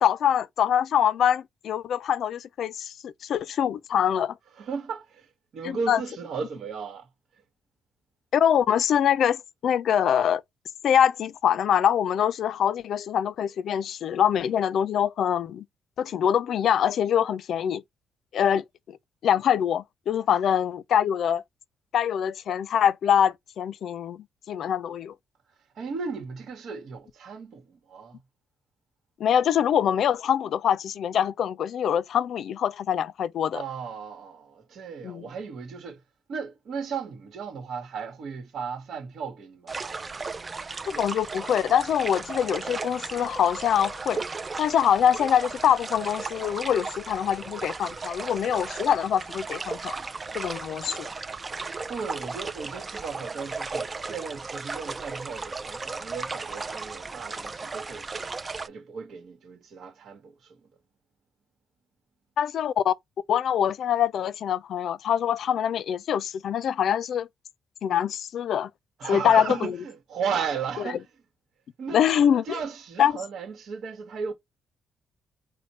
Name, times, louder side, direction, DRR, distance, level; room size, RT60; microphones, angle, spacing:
voice 1, 0.0-4.3 5.6-6.0 8.3-10.4 10.8-15.6 16.0-17.8 18.3-19.0 19.2-21.4 21.9-25.1 29.2-33.6 35.0-35.2 40.9-44.2 44.6-50.0 50.3-51.1 62.4-62.9 63.3-67.3 67.8-68.7 69.1-69.8 71.9-72.6 73.0-73.1, left 9 dB, 65° left, 0.4 m, -24 dB
voice 2, 4.6-7.1 25.7-28.2 33.5-36.0 36.3-40.0 51.9-60.6 69.0-71.0 71.8-74.3, right 6 dB, 65° right, 1.2 m, -35 dB
sound 1, 39.7-58.7, right 4 dB, 30° right, 0.4 m, -36 dB
4.3 x 2.2 x 4.1 m
cardioid pair, 90°, 0 cm